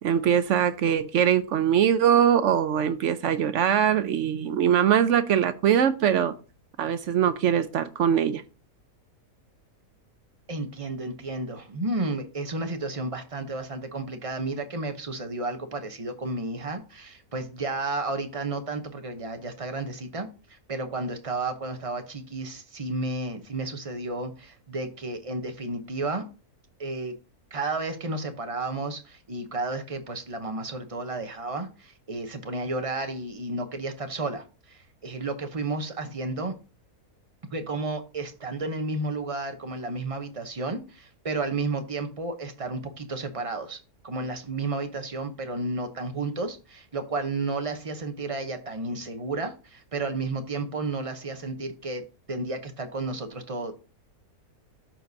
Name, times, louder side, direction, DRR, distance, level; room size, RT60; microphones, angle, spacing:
voice 1, 0.0-6.3 6.8-8.4, right 9 dB, 65° right, 0.8 m, -22 dB
voice 2, 10.5-26.3 26.8-27.1 27.5-36.5 37.5-43.8 44.0-53.8, right 2 dB, 30° right, 0.7 m, -32 dB
12.5 x 4.5 x 2.7 m
omnidirectional pair, 1.6 m